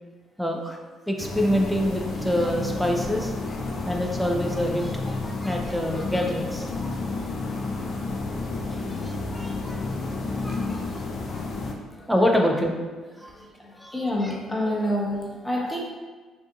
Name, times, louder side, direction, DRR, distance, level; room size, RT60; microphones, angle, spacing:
voice 1, 0.4-0.8 1.1-3.3 3.7-7.0 8.7-9.9 10.3-11.0 11.3-11.5 12.0-12.7 13.1-13.3 13.8-13.9 14.2-14.4 14.7-14.9 15.5-15.8, equal, ahead, 1 dB, 0.5 m, -27 dB
sound 1, 1.2-11.7, left 3 dB, 55° left, 0.4 m, -31 dB
voice 2, 13.8-15.8, left 1 dB, 15° left, -3 dB, 0.9 m, -27 dB
2.6 x 2.4 x 3.6 m, 1.4 s
hypercardioid pair, 50°, 0 cm